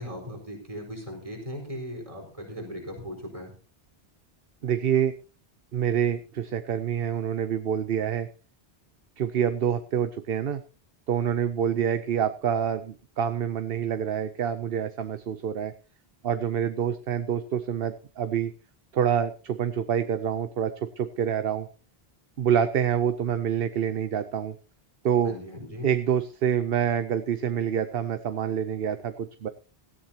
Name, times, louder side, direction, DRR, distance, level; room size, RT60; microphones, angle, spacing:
voice 1, 0.0-3.5 25.2-25.9, equal, 35° right, 0 dB, 4.7 m, -38 dB
voice 2, 4.6-5.1 5.7-8.3 9.2-10.6 11.1-15.7 16.2-18.5 18.9-21.7 22.4-24.5 25.0-25.4 25.8-29.5, right 9 dB, 70° right, 10 dB, 1.0 m, -27 dB
17.5 x 14.0 x 2.9 m, 0.35 s
omnidirectional pair, 1.0 m